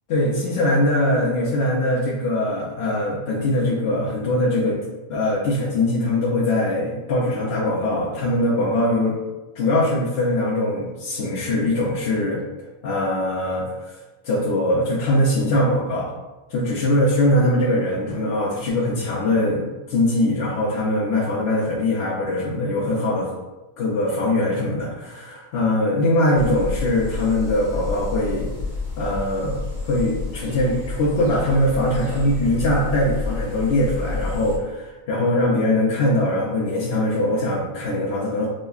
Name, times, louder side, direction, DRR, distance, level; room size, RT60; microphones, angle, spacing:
voice 1, 0.1-4.8 5.1-9.2 9.5-12.4 12.8-14.0 14.2-16.1 16.5-23.3 23.8-28.5 29.0-29.6 29.9-38.5, left 1 dB, 60° left, -6 dB, 0.8 m, -22 dB
sound 1, 26.4-34.6, left 3 dB, 75° left, 1.4 m, -30 dB
5.2 x 2.1 x 2.3 m, 1.1 s
omnidirectional pair, 1.4 m